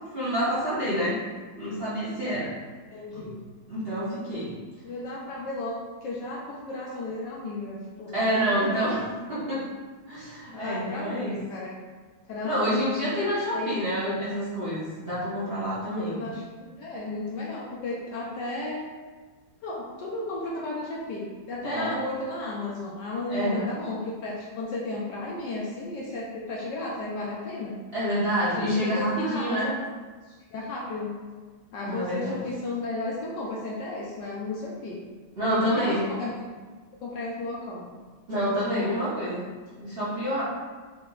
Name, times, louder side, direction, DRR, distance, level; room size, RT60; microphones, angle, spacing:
voice 1, 0.1-1.2 1.6-2.5 3.1-3.3 3.7-4.5 8.1-9.0 9.3-9.6 10.1-11.4 12.4-16.2 21.6-22.0 23.3-23.7 27.9-29.7 31.8-32.4 35.4-36.1 38.3-39.5 39.8-40.4, right 1 dB, 45° right, -10 dB, 0.8 m, -28 dB
voice 2, 2.9-3.4 4.8-5.8 6.0-8.6 8.9-9.1 10.5-11.7 12.3-12.9 13.5-13.8 15.9-18.8 19.6-27.8 28.6-29.7 30.3-31.1 31.7-35.0 35.5-36.5 37.0-37.9 38.3-38.4 38.7-38.9, left 2 dB, 70° left, -4 dB, 1.1 m, -34 dB
4.3 x 2.9 x 3.8 m, 1.4 s
omnidirectional pair, 2.3 m